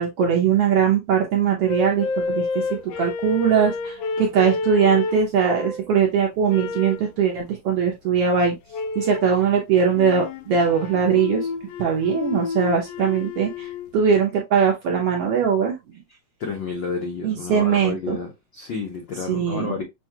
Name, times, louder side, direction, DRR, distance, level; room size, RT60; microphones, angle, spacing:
voice 1, 0.0-8.6 8.9-11.5 11.8-15.8 17.2-18.2 19.3-19.8, right 7 dB, 70° right, 1.4 m, -21 dB
sound 1, 1.7-5.9 6.5-7.1 8.7-9.4 9.9-13.9, left 4 dB, 90° left, 2.2 m, -29 dB
voice 2, 16.4-18.3 18.5-19.8, left 5 dB, 70° left, 1.1 m, -30 dB
6.3 x 2.3 x 2.8 m
omnidirectional pair, 3.5 m